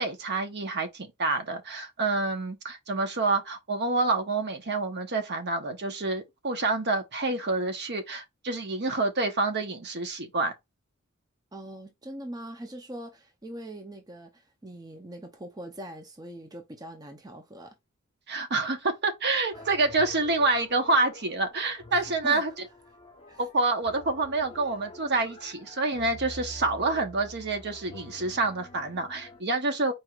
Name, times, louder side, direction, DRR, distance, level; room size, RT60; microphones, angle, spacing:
voice 1, 0.0-10.5 18.3-22.7 23.4-29.9, right 3 dB, 50° right, 1.1 m, -27 dB
voice 2, 11.5-17.8 19.6-19.7 21.9-22.4 23.3-23.4, right 1 dB, 15° right, 0.7 m, -42 dB
sound 1, 19.5-29.4, left 1 dB, 25° left, 1.3 m, -47 dB
4.6 x 4.6 x 2.5 m
head